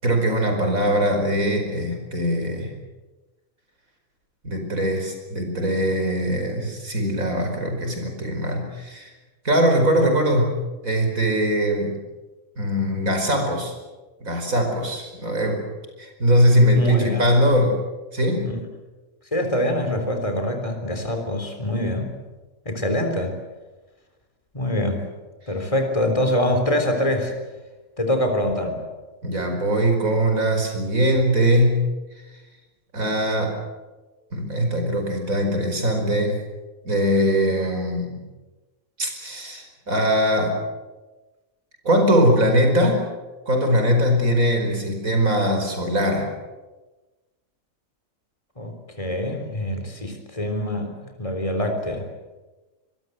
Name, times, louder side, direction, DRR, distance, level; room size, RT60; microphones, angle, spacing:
voice 1, 0.0-2.7 4.4-9.1 9.5-10.5 10.8-12.0 12.6-13.7 14.2-15.6 16.0-17.8 18.1-18.5 29.2-31.8 32.9-33.6 34.3-36.4 36.8-38.2 39.0-40.6 41.8-43.0 43.5-46.3, equal, 80° right, 4 dB, 5.4 m, -21 dB
voice 2, 16.8-17.3 18.4-18.6 19.3-22.1 22.7-23.3 24.5-25.0 25.5-27.3 28.0-28.8 48.6-50.9 51.2-52.1, left 1 dB, 25° left, 5 dB, 3.7 m, -24 dB
25.0 x 22.0 x 8.0 m, 1.2 s
omnidirectional pair, 1.4 m